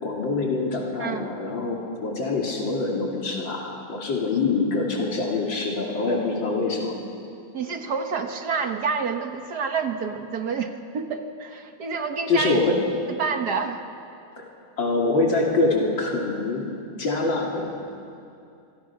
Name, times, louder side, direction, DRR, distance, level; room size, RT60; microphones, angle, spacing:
voice 1, 0.0-7.0 12.3-12.8 14.4-14.5 14.8-16.7 17.0-17.7, left 3 dB, 90° left, -1 dB, 3.6 m, -25 dB
voice 2, 7.5-12.7 13.2-13.8, right 5 dB, 60° right, 5 dB, 1.8 m, -28 dB
26.0 x 24.5 x 6.0 m, 2.6 s
omnidirectional pair, 2.0 m